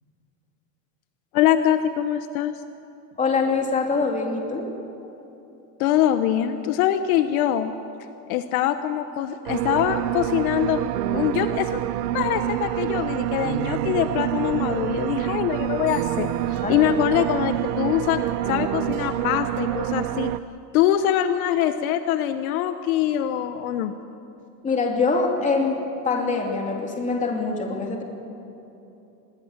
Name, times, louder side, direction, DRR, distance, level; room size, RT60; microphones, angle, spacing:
voice 1, 1.3-2.5 5.8-7.7 8.3-10.8 11.1-11.7 12.1-20.3 20.7-23.9, left 11 dB, 60° left, 9 dB, 1.1 m, -23 dB
voice 2, 3.2-4.6 16.6-16.9 24.6-28.0, left 4 dB, 15° left, 1 dB, 2.8 m, -24 dB
sound 1, 9.5-20.4, right 13 dB, 80° right, 0.9 m, -27 dB
25.5 x 21.0 x 7.3 m, 2.9 s
supercardioid pair, 160°, 47 cm